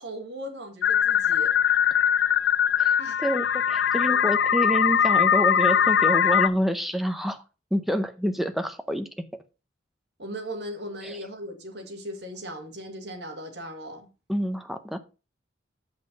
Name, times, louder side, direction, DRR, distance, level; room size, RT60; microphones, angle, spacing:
voice 1, 0.0-1.5 3.0-3.2 10.2-14.1, equal, 60° right, 1.9 m, -38 dB
sound 1, 0.8-6.5, left 8 dB, 65° left, 0.4 m, -21 dB
voice 2, 2.8-7.4 7.7-9.1 11.0-11.2 14.3-15.0, equal, ahead, 0.6 m, -27 dB
7.4 x 5.6 x 5.1 m
head